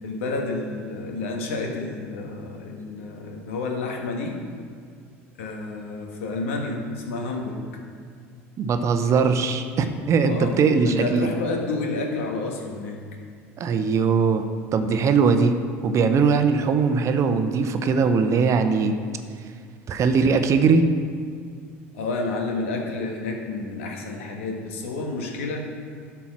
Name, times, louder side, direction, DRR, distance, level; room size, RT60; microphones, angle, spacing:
voice 1, 0.0-4.4 5.4-7.7 10.2-13.0 21.9-25.7, left 3 dB, 80° left, 1 dB, 1.5 m, -30 dB
voice 2, 8.6-11.3 13.6-14.4 14.7-15.6 15.8-19.0 19.9-20.9, right 5 dB, 45° right, 8 dB, 0.8 m, -20 dB
11.0 x 4.6 x 6.0 m, 2.1 s
hypercardioid pair, 75°, 7 cm